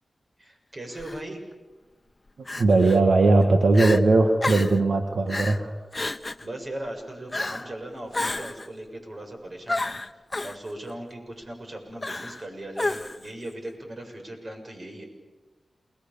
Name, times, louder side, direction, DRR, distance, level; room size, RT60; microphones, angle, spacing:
voice 1, 0.4-1.4 6.4-10.0 10.4-15.0, right 1 dB, 50° right, 3 dB, 7.0 m, -38 dB
Crying sobbing, 0.9-1.2 2.5-3.0 3.4-3.5 3.7-4.0 4.4-4.8 5.3-5.6 5.9-6.5 7.3-7.7 8.1-8.7 9.7-10.6 12.0-12.4 12.8-13.3, left 2 dB, 30° left, 1.0 m, -30 dB
voice 2, 2.6-5.7, right 3 dB, 80° right, 4 dB, 1.9 m, -19 dB
29.5 x 20.5 x 7.1 m, 1.2 s
cardioid pair, 50°, 0 cm